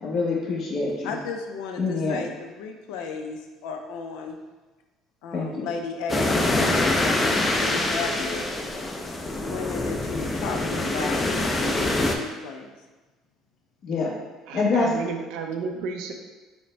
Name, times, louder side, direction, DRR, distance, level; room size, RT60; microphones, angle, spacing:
voice 1, 0.0-1.2 1.8-2.2 5.3-5.7 13.8-14.1 14.5-15.0, left 3 dB, 55° left, -3 dB, 0.9 m, -25 dB
voice 2, 1.0-4.4 5.2-6.3 7.2-8.5 9.4-11.3 11.5-12.7, left 4 dB, 85° left, 4 dB, 0.4 m, -34 dB
sound 1, 6.1-12.2, left 2 dB, 20° left, 0.4 m, -25 dB
voice 3, 14.5-16.1, right 5 dB, 80° right, 4 dB, 0.5 m, -32 dB
5.0 x 2.1 x 3.3 m, 1.2 s
cardioid pair, 100°, 0 cm